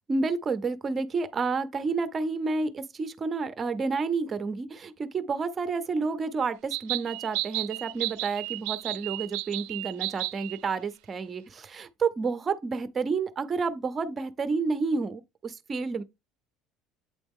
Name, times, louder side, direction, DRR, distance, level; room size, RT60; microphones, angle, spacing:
voice 1, 0.1-16.0, right 4 dB, 25° right, 0.6 m, -30 dB
sound 1, 6.7-10.6, right 22 dB, 90° right, 0.4 m, -33 dB
8.6 x 4.1 x 3.6 m
cardioid pair, 160°, 0 cm